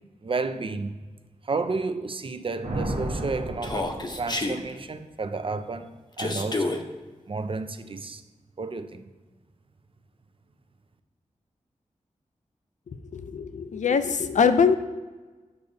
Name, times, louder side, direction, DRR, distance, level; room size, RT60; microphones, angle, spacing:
voice 1, 0.2-1.0 1.4-6.8 7.3-8.2 8.6-9.1, right 3 dB, 45° right, 8 dB, 0.5 m, -31 dB
Thunder, 2.6-4.8, right 1 dB, 85° right, 1.1 m, -33 dB
Human voice, 3.6-4.6 6.2-6.8, left 2 dB, 35° left, 0.8 m, -28 dB
voice 2, 13.1-14.8, left 6 dB, 75° left, 11 dB, 0.5 m, -22 dB
6.8 x 6.7 x 2.7 m, 1.3 s
cardioid pair, 55°, 13 cm